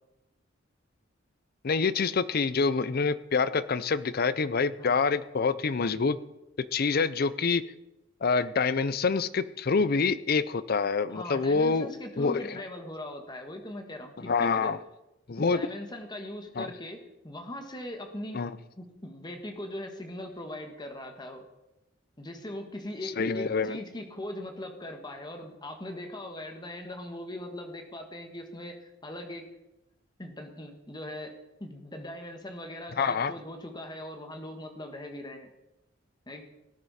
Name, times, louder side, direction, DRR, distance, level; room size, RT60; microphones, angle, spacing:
voice 1, 1.6-6.2 6.7-7.6 8.2-11.9 12.2-12.6 14.2-14.8 15.3-15.6 16.6-16.7 18.3-18.5 23.0-23.8 33.0-33.3, left 4 dB, 50° left, 15 dB, 0.5 m, -26 dB
voice 2, 11.1-14.7 15.4-18.4 18.8-21.5 22.2-29.5 30.2-31.3 31.6-35.5 36.3-36.4, left 1 dB, 20° left, 4 dB, 1.5 m, -40 dB
18.5 x 9.8 x 4.2 m, 0.95 s
head